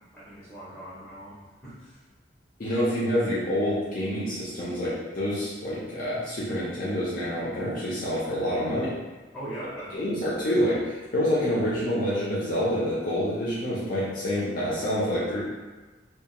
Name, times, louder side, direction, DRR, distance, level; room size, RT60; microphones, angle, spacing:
voice 1, 0.1-2.0 9.3-10.1, right 1 dB, ahead, -10 dB, 0.5 m, -40 dB
voice 2, 2.6-8.9 9.9-15.4, equal, 50° left, -8 dB, 0.5 m, -27 dB
2.4 x 2.3 x 2.8 m, 1.2 s
head